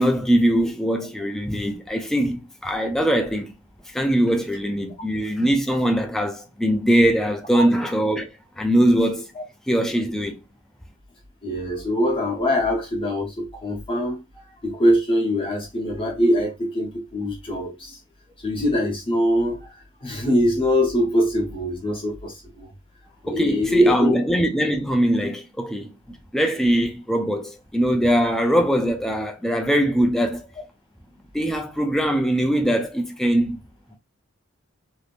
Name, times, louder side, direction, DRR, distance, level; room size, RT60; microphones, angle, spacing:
voice 1, 0.0-3.5 3.9-9.3 9.7-10.4 23.3-25.9 26.3-30.5 31.3-33.6, equal, ahead, 0.4 m, -21 dB
voice 2, 11.4-18.0 18.4-22.7 23.2-24.2, equal, 25° left, 0.8 m, -23 dB
3.4 x 2.7 x 2.4 m
head